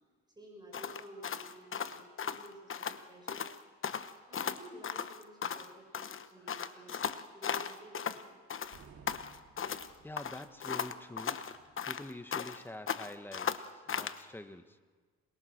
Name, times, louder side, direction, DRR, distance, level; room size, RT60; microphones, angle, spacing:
voice 1, 0.3-3.5 4.2-7.0 7.3-8.4, right 1 dB, 15° right, -1 dB, 5.9 m, -53 dB
sound 1, 0.7-3.0 3.3-3.6 3.8-5.7 5.9-8.2 8.5-9.9 10.2-12.6 12.9-14.2, left 7 dB, 45° left, 1.1 m, -37 dB
voice 2, 6.4-7.1 10.0-11.4 11.8-14.8, left 1 dB, 5° left, 9 dB, 1.3 m, -47 dB
sound 2, 8.6-12.5, right 6 dB, 65° right, 5.6 m, -60 dB
27.5 x 21.0 x 6.6 m, 1.5 s
cardioid pair, 90°, 30 cm